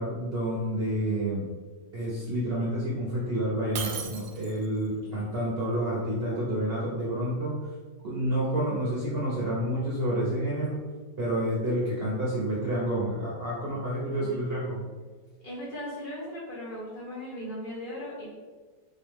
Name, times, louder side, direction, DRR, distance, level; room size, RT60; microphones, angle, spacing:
voice 1, 0.0-1.5 1.9-7.7 8.0-10.8 11.2-14.8, right 1 dB, 50° right, -6 dB, 0.7 m, -29 dB
Shatter, 3.8-4.8, right 7 dB, 75° right, 1.1 m, -36 dB
voice 2, 4.9-5.3 14.2-14.4 15.4-18.3, equal, 30° left, -9 dB, 1.3 m, -38 dB
4.0 x 3.1 x 3.5 m, 1.4 s
omnidirectional pair, 1.9 m